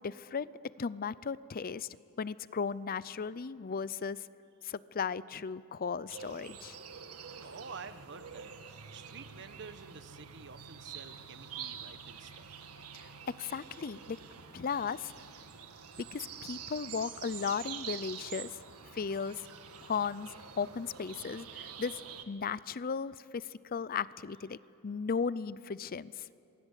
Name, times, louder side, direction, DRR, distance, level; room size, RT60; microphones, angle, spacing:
voice 1, 0.0-1.9 2.2-4.3 4.6-6.8 12.9-13.1 13.4-14.2 14.5-15.1 16.1-18.6 18.9-19.5 19.8-22.0 22.3-24.6 24.8-26.3, left 6 dB, 40° left, 18 dB, 0.5 m, -36 dB
sound 1, 6.1-22.2, right 7 dB, 85° right, 1.7 m, -47 dB
voice 2, 7.4-8.5 8.9-12.5, right 5 dB, 55° right, 11 dB, 1.2 m, -49 dB
27.5 x 22.0 x 8.3 m, 2.9 s
head